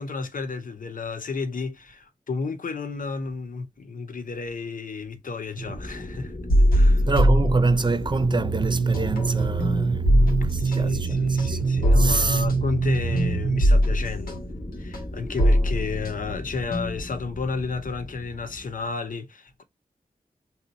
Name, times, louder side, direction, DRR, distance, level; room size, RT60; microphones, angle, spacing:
voice 1, 0.0-6.3 6.7-7.1 10.6-14.4 14.8-19.6, left 4 dB, 65° left, 0.7 m, -32 dB
sound 1, 5.6-19.0, left 1 dB, 25° left, 1.7 m, -36 dB
sound 2, 6.5-8.2 8.5-17.2, equal, 85° left, 1.2 m, -22 dB
voice 2, 7.1-12.5, right 3 dB, 30° right, 0.5 m, -26 dB
sound 3, 8.3-13.6, right 5 dB, 85° right, 0.4 m, -25 dB
2.8 x 2.7 x 3.9 m
cardioid pair, 45°, 15 cm